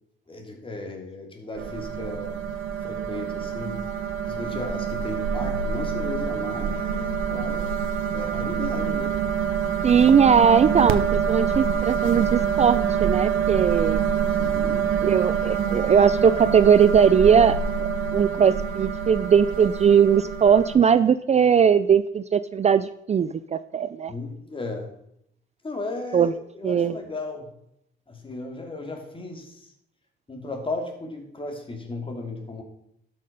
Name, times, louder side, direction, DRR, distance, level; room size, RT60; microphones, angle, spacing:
voice 1, 0.3-2.4 2.8-3.8 4.3-7.7 8.1-9.2 14.4-14.9 24.1-24.9 25.6-27.5 28.1-29.7 30.3-32.6, left 2 dB, 25° left, 2 dB, 2.8 m, -35 dB
sound 1, 1.6-20.8, right 7 dB, 90° right, 0.9 m, -26 dB
voice 2, 9.8-14.0 15.0-24.1 26.1-26.3 26.6-26.9, right 7 dB, 35° right, 14 dB, 0.4 m, -19 dB
12.0 x 6.6 x 5.4 m, 0.74 s
cardioid pair, 90°, 20 cm